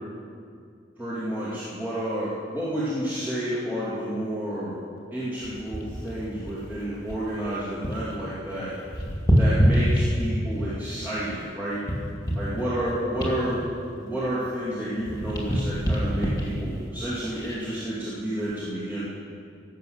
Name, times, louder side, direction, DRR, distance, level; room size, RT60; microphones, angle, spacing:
voice 1, 1.0-4.8 5.1-8.7 9.3-11.8 12.3-13.6 13.9-19.1, right 1 dB, 10° right, -12 dB, 2.7 m, -30 dB
sound 1, 5.4-8.2 8.4-10.6 11.1-14.7 15.0-17.8 18.3-18.5, equal, 20° left, 2.4 m, -27 dB
17.0 x 7.6 x 6.5 m, 2.3 s
head